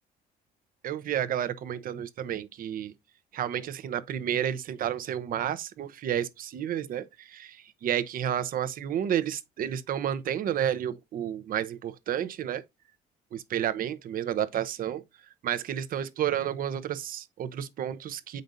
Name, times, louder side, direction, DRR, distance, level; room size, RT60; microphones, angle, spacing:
voice 1, 0.8-2.9 3.3-12.6 13.3-15.0 15.4-18.4, right 10 dB, 55° right, 0.8 m, -31 dB
7.8 x 5.3 x 2.6 m
cardioid pair, 110°, 17 cm